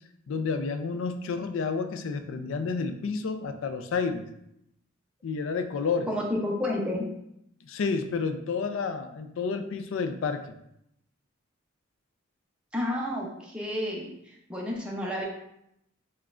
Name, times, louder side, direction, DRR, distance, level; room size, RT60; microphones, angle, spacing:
voice 1, 0.3-4.3 5.2-6.1 7.6-10.4, left 5 dB, 75° left, 8 dB, 0.4 m, -30 dB
voice 2, 6.1-7.1 12.7-15.2, left 1 dB, 5° right, -3 dB, 0.5 m, -31 dB
5.8 x 2.2 x 2.4 m, 0.78 s
head